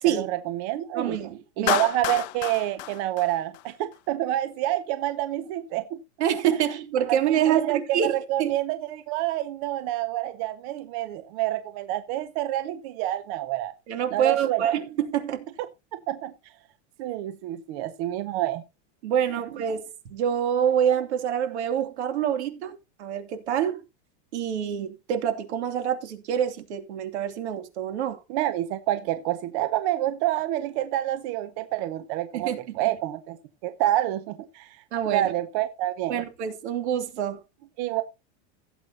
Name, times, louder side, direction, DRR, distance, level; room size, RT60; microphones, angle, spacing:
voice 1, 0.0-1.2 1.6-6.0 7.1-7.8 8.1-13.7 14.1-14.6 16.1-16.3 17.0-18.6 28.3-33.4 33.6-34.8 35.1-36.2 37.8-38.0, right 14 dB, 30° right, 0.7 m, -28 dB
voice 2, 0.9-1.8 6.2-8.5 13.9-15.4 19.0-19.8 20.1-23.8 24.3-28.2 32.3-32.8 34.9-35.3 36.1-37.4, right 9 dB, 75° right, 2.8 m, -26 dB
Clapping, 1.7-4.0, left 17 dB, 40° left, 0.6 m, -30 dB
16.5 x 8.0 x 2.8 m
supercardioid pair, 180°, 34 cm